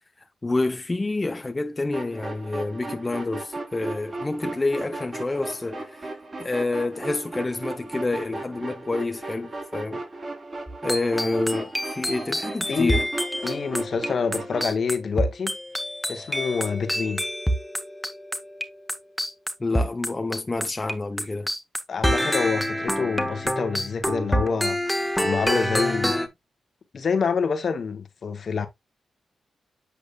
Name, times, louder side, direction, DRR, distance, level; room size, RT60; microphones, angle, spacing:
voice 1, 0.2-10.0 10.8-13.1 19.6-21.5, left 2 dB, 30° left, 0.8 m, -28 dB
sound 1, 1.9-14.7, right 2 dB, 45° right, 4.3 m, -36 dB
sound 2, 10.7-20.9 21.2-26.3, equal, 5° left, 1.3 m, -27 dB
voice 2, 13.4-15.5 16.1-17.2 21.9-24.8 25.2-26.3 26.9-28.7, left 5 dB, 60° left, 1.2 m, -27 dB
8.3 x 5.1 x 2.4 m
supercardioid pair, 50°, 0 cm